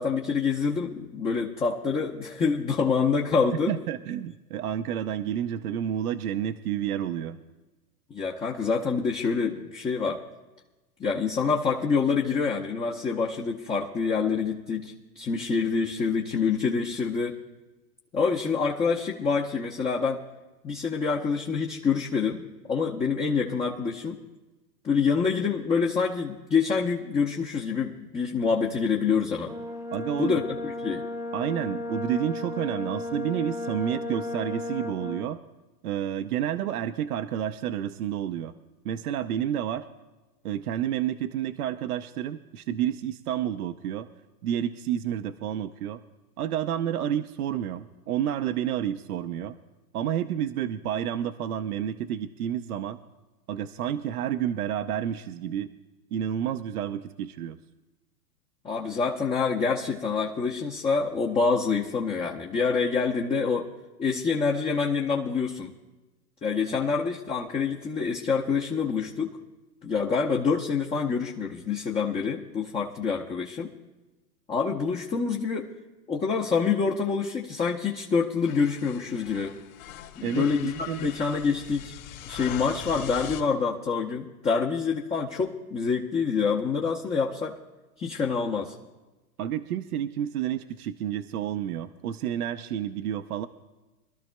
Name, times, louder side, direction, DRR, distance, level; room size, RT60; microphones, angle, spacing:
voice 1, 0.0-3.7 8.1-10.2 11.0-17.4 18.1-20.2 20.6-24.2 24.8-29.5 30.2-31.1 58.6-63.7 64.0-65.7 66.4-69.4 69.8-73.7 74.5-75.7 76.1-79.6 80.2-81.9 82.3-87.5 88.0-88.7, left 5 dB, 15° left, -1 dB, 0.6 m, -26 dB
voice 2, 3.7-7.4 29.9-30.4 31.3-35.4 35.8-38.5 38.8-39.9 40.4-44.1 44.4-46.0 46.4-49.6 49.9-53.0 53.5-55.7 56.1-57.6 80.2-81.1 89.4-93.5, right 10 dB, 65° right, 8 dB, 0.8 m, -30 dB
Brass instrument, 29.5-35.3, left 1 dB, 5° right, 0.9 m, -34 dB
sound 1, 78.4-83.4, left 10 dB, 55° left, 1.9 m, -42 dB
25.5 x 12.5 x 2.2 m, 1.1 s
hypercardioid pair, 110°, 48 cm